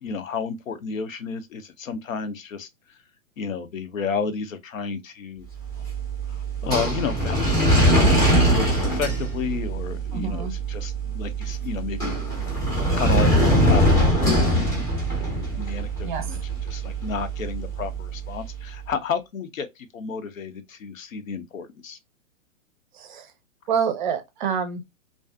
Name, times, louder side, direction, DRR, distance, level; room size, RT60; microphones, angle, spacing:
voice 1, 0.0-3.0 3.4-5.5 6.3-7.6 8.0-12.2 12.9-22.0, left 5 dB, 75° left, 0.6 m, -32 dB
sound 1, 5.6-18.7, right 1 dB, 10° left, 0.5 m, -23 dB
voice 2, 10.1-10.5 16.0-16.4 22.9-23.3 23.7-24.9, right 7 dB, 40° right, 0.5 m, -28 dB
2.5 x 2.3 x 2.2 m
figure-of-eight pair, 120°, 41 cm